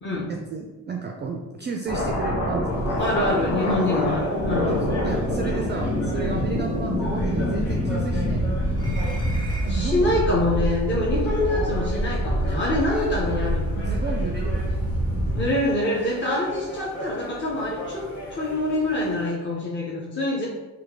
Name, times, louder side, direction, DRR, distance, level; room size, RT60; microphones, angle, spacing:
voice 1, 0.3-3.1 4.7-8.7 9.6-10.1 11.2-11.6 12.9-13.2 13.7-14.8, right 5 dB, 25° right, 2 dB, 0.3 m, -33 dB
sound 1, 1.9-15.5, equal, 60° left, 1.3 m, -25 dB
sound 2, 2.7-19.3, left 1 dB, 85° left, 1.2 m, -38 dB
voice 2, 3.0-4.7 9.7-13.8 15.3-18.0 18.3-20.4, left 1 dB, 25° left, -4 dB, 0.8 m, -25 dB
sound 3, 8.7-10.1 11.4-11.5 12.4-12.6, right 2 dB, 10° left, 1.2 m, -41 dB
3.0 x 2.3 x 3.7 m, 1.2 s
hypercardioid pair, 55°, 43 cm